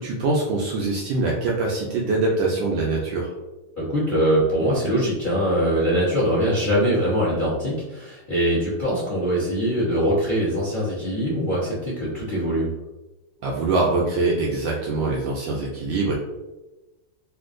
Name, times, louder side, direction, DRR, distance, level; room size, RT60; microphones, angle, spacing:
voice 1, 0.0-3.3 13.4-16.1, right 3 dB, 75° right, -3 dB, 1.1 m, -23 dB
voice 2, 3.8-12.7, equal, 45° left, -9 dB, 0.6 m, -22 dB
3.5 x 2.5 x 2.4 m, 1.1 s
omnidirectional pair, 2.4 m